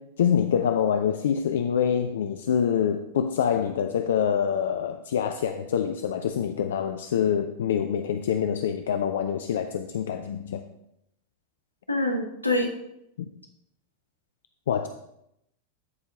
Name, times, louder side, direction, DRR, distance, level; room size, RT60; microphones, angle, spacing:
voice 1, 0.0-10.6 13.2-13.3 14.7-14.9, left 8 dB, 60° left, 8 dB, 0.4 m, -26 dB
voice 2, 11.9-12.7, left 1 dB, 85° left, 4 dB, 1.1 m, -25 dB
13.0 x 4.6 x 3.7 m, 0.79 s
figure-of-eight pair, 90°, 0 cm